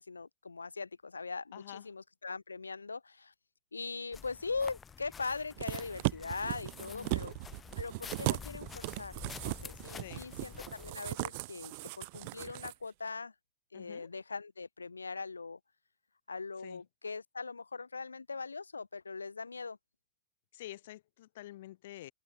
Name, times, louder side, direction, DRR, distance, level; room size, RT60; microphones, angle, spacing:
voice 1, 0.0-3.3 3.7-7.3 7.8-13.4 13.7-15.6 16.3-19.8, left 4 dB, 75° left, 1.7 m, -41 dB
voice 2, 1.5-1.9 6.8-7.2 10.0-10.3 13.7-14.1 16.6-16.8 20.5-22.1, left 15 dB, 55° left, 6.0 m, -48 dB
sound 1, 4.1-10.9, left 6 dB, 20° left, 2.2 m, -49 dB
sound 2, 5.6-12.7 13.1-13.2, right 26 dB, 50° right, 0.4 m, -38 dB
open air
figure-of-eight pair, 90°, 0 cm